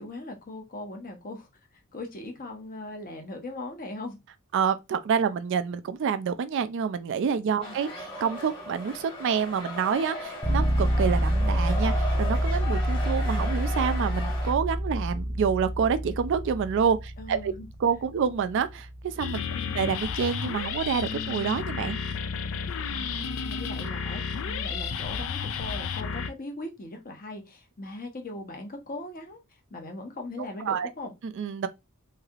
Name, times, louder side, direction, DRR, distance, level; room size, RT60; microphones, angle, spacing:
voice 1, 0.0-1.5 1.9-4.2 7.6-7.7 17.2-17.7 19.5-19.8 22.9-29.4 29.7-31.1, left 2 dB, 40° left, 0.8 m, -39 dB
voice 2, 4.5-17.5 17.8-19.4 19.7-22.0 30.6-30.9 31.2-31.7, right 6 dB, 55° right, 0.3 m, -28 dB
sound 1, 7.6-14.5, left 1 dB, 25° left, 1.4 m, -37 dB
sound 2, 10.4-20.2, equal, 10° left, 0.6 m, -28 dB
sound 3, 19.2-26.3, left 6 dB, 60° left, 0.4 m, -32 dB
3.2 x 2.7 x 2.4 m
head